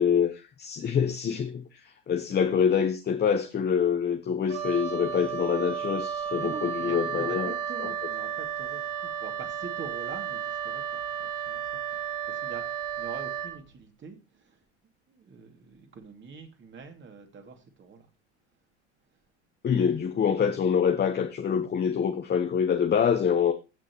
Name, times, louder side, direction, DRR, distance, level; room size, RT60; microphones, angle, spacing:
voice 1, 0.0-7.5 7.8-7.9 19.6-23.5, left 7 dB, 30° left, 1.1 m, -25 dB
Wind instrument woodwind instrument, 4.5-13.6, right 8 dB, 80° right, 1.7 m, -33 dB
voice 2, 6.4-11.8 12.0-14.6 15.1-18.1, right 5 dB, 35° right, 2.7 m, -44 dB
15.5 x 6.4 x 3.1 m
hypercardioid pair, 85°, 35 cm